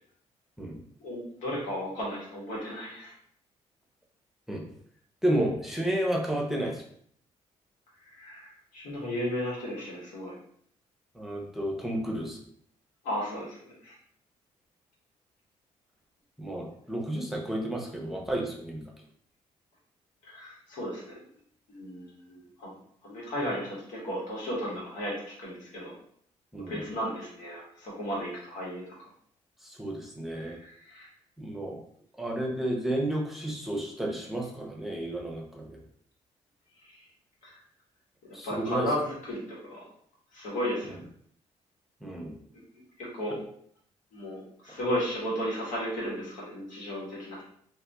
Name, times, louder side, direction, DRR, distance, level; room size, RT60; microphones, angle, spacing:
voice 1, 1.0-3.1 8.1-10.3 13.0-13.9 20.2-21.1 21.7-22.7 23.0-25.9 26.7-28.8 30.3-31.1 36.9-37.0 37.4-37.6 38.2-39.8 40.3-40.9 43.0-43.4 44.1-47.4, equal, 85° left, -5 dB, 1.5 m, -34 dB
voice 2, 5.2-6.8 11.1-12.4 16.4-18.8 26.5-26.9 29.6-30.6 31.4-31.8 32.2-35.8 38.3-38.9 40.9-41.0 42.0-42.3, right 1 dB, ahead, -1 dB, 0.9 m, -31 dB
2.7 x 2.6 x 3.5 m, 0.62 s
cardioid pair, 75°, 13 cm